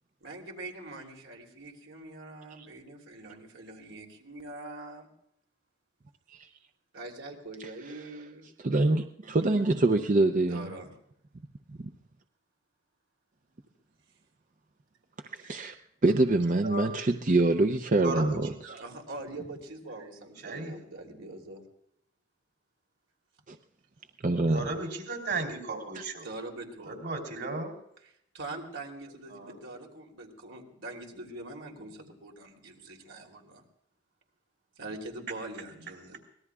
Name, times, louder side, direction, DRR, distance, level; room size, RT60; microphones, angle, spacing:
voice 1, 0.2-5.1 6.9-8.5 10.5-10.9 18.8-21.6 26.2-26.9 28.0-33.6 34.8-36.2, right 2 dB, 85° right, 1 dB, 3.3 m, -43 dB
voice 2, 8.6-10.7 11.8-11.9 15.3-15.7 16.0-18.5 23.5-23.6 24.2-24.7 25.9-26.0, right 2 dB, 40° right, 7 dB, 0.6 m, -25 dB
voice 3, 16.6-17.0 18.0-18.4 18.6-18.8 20.4-20.7 24.5-26.3 26.9-27.7 29.3-29.6, right 3 dB, 60° right, 4 dB, 3.5 m, -35 dB
24.5 x 19.0 x 2.4 m, 0.73 s
head